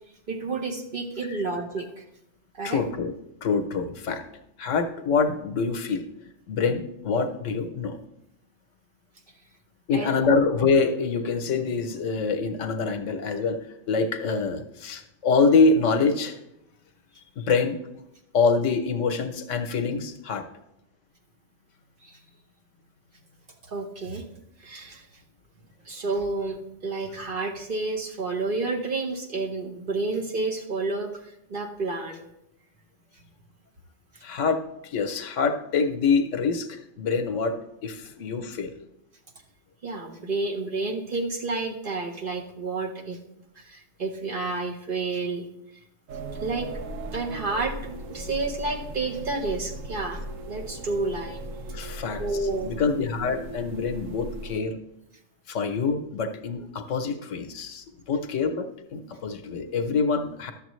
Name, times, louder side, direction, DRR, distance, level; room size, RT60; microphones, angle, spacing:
voice 1, 0.3-2.0 2.6-2.8 9.9-10.2 22.0-22.2 23.7-24.3 24.6-25.0 25.9-31.1 31.5-32.2 39.8-43.2 43.6-45.4 46.4-46.7 47.1-50.2 50.5-51.4 52.2-52.7, right 3 dB, 50° right, 2 dB, 1.0 m, -30 dB
voice 2, 2.6-3.1 3.4-4.2 4.6-6.0 6.5-8.0 9.9-13.6 13.9-16.4 17.4-17.8 18.3-20.5 34.2-37.6 37.8-38.7 51.7-52.2 52.6-54.8 55.5-58.7 58.9-60.5, left 4 dB, 75° left, 8 dB, 1.1 m, -25 dB
sound 1, 46.1-54.6, right 1 dB, 90° right, 1.2 m, -38 dB
11.5 x 7.2 x 3.1 m, 0.83 s
omnidirectional pair, 1.3 m